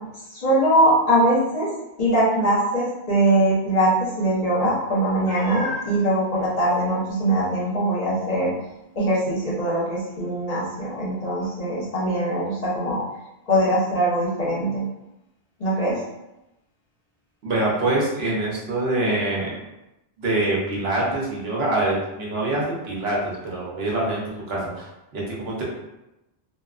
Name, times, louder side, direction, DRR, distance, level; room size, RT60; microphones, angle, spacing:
voice 1, 0.3-1.7 2.0-8.5 9.0-13.0 13.5-14.9 15.6-16.0, right 1 dB, 40° left, -7 dB, 0.8 m, -22 dB
Meow, 5.3-6.0 6.7-6.8 7.3-7.4 11.4-11.5, left 3 dB, 35° right, 0.8 m, -33 dB
voice 2, 17.4-19.6 20.2-25.6, right 2 dB, 75° right, -4 dB, 1.0 m, -25 dB
2.8 x 2.2 x 2.3 m, 0.94 s
omnidirectional pair, 1.1 m